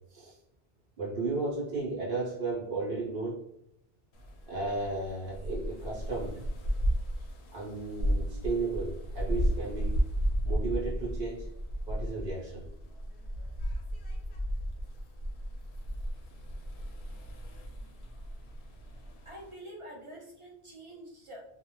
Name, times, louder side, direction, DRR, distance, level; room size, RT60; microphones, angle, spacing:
voice 1, 1.0-3.4 4.5-6.4 7.5-10.0 10.4-11.5 11.9-12.7, right 3 dB, 65° right, -5 dB, 0.8 m, -34 dB
sound 1, 4.1-19.5, equal, 85° left, 0.8 m, -34 dB
voice 2, 19.3-21.4, right 1 dB, 45° right, -2 dB, 0.4 m, -46 dB
2.4 x 2.0 x 2.9 m, 0.78 s
omnidirectional pair, 1.1 m